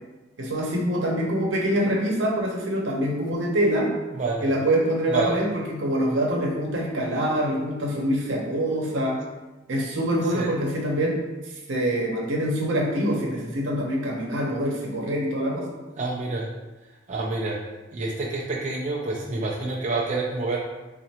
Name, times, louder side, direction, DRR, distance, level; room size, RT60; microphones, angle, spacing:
voice 1, 0.4-3.9 4.4-9.2 9.7-11.2 11.7-15.6, equal, 75° right, -1 dB, 0.8 m, -25 dB
voice 2, 4.1-4.5 5.1-5.4 10.3-10.5 16.0-16.5 17.1-17.6 17.9-20.6, right 3 dB, 40° right, -3 dB, 0.3 m, -27 dB
4.2 x 2.5 x 2.8 m, 1.1 s
head